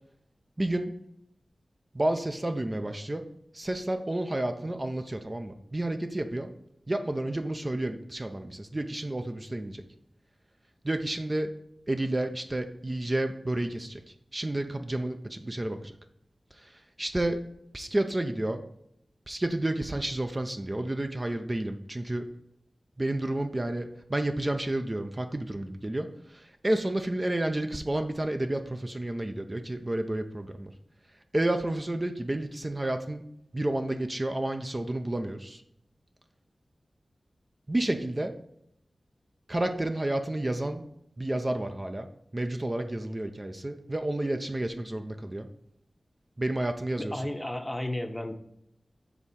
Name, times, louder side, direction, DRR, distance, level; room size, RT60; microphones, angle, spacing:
voice 1, 0.6-0.9 1.9-3.3 3.5-6.5 6.9-9.8 10.8-11.5 11.9-14.0 14.3-15.9 16.6-17.4 17.7-18.6 19.3-22.3 23.0-30.7 31.3-33.3 33.5-35.6 37.7-38.3 39.5-40.8 41.2-42.1 42.3-45.5 46.4-47.2, right 1 dB, 30° right, 6 dB, 0.5 m, -30 dB
voice 2, 47.1-48.3, left 1 dB, 15° left, 6 dB, 0.7 m, -33 dB
7.0 x 3.5 x 4.2 m, 0.76 s
cardioid pair, 50°, 0 cm